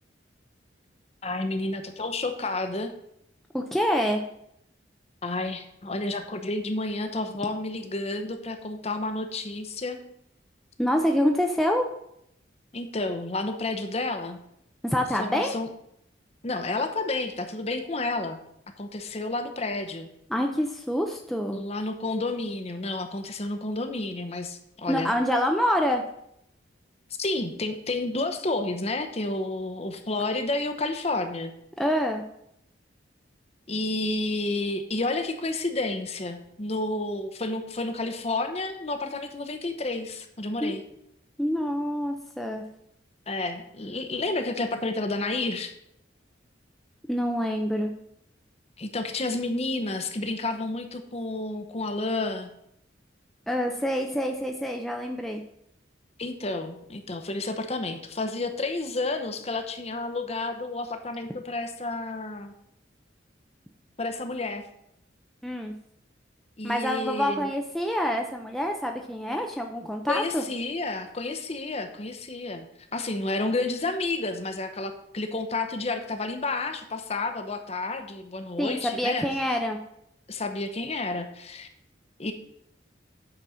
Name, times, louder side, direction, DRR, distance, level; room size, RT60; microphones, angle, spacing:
voice 1, 1.2-2.9 5.2-10.0 12.7-14.4 15.2-15.7 16.4-18.4 18.8-20.1 21.5-25.1 27.2-31.5 33.7-40.8 43.3-45.7 48.8-52.5 56.2-62.5 64.0-64.6 66.6-67.5 70.1-72.7 72.9-79.3 80.3-81.7 82.2-82.3, left 2 dB, 35° left, 7 dB, 0.8 m, -30 dB
voice 2, 3.5-4.2 10.8-11.9 14.8-15.5 20.3-21.6 24.9-26.0 31.8-32.2 40.6-40.7 41.4-42.6 47.1-47.9 53.5-55.4 65.4-65.7 66.6-70.4 78.6-79.8, equal, ahead, 2 dB, 0.5 m, -26 dB
8.9 x 4.2 x 6.3 m, 0.75 s
head